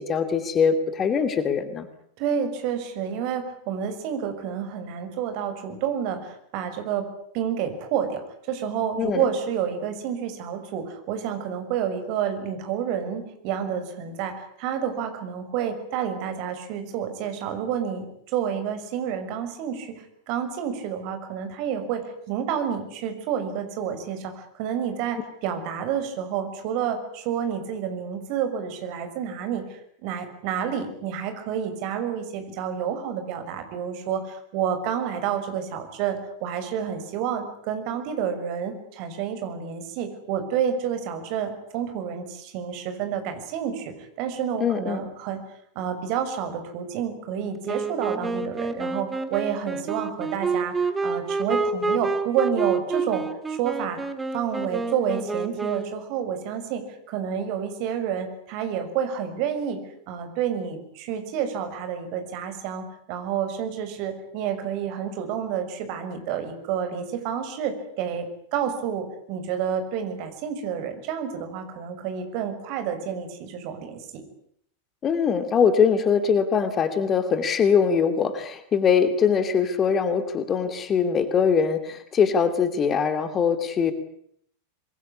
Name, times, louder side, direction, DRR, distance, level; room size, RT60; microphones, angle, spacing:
voice 1, 0.0-1.9 9.0-9.2 44.6-45.1 75.0-83.9, left 6 dB, 25° left, 11 dB, 2.8 m, -22 dB
voice 2, 2.2-7.0 7.3-8.2 8.5-19.9 20.3-45.4 45.7-54.0 54.3-59.8 60.1-74.2, right 8 dB, 45° right, 8 dB, 6.2 m, -29 dB
Wind instrument woodwind instrument, 47.6-56.1, right 4 dB, 10° right, 2.8 m, -28 dB
27.0 x 22.5 x 9.8 m, 0.68 s
figure-of-eight pair, 90°, 0 cm